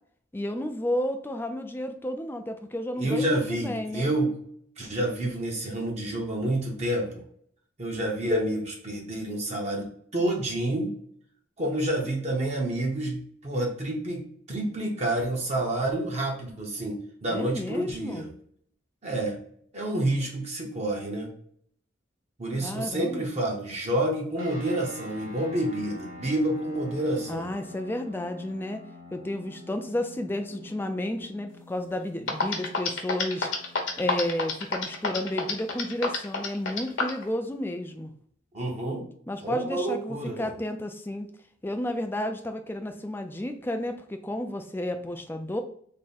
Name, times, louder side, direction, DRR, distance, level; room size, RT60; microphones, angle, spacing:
voice 1, 0.3-4.1 17.3-18.3 22.6-23.3 27.3-28.9 29.1-33.5 34.0-38.1 39.3-41.3 41.6-45.6, left 1 dB, 10° left, 6 dB, 0.4 m, -32 dB
voice 2, 3.0-4.3 4.8-7.2 7.8-10.9 11.6-18.3 19.0-19.4 19.7-21.3 22.4-27.5 38.5-39.1 39.4-40.5, right 1 dB, 35° right, -1 dB, 0.8 m, -29 dB
sound 1, 24.3-36.2, left 2 dB, 85° right, 1.5 m, -47 dB
sound 2, 31.9-32.0 32.3-37.2, left 4 dB, 85° left, 0.9 m, -27 dB
3.5 x 2.1 x 4.1 m, 0.63 s
head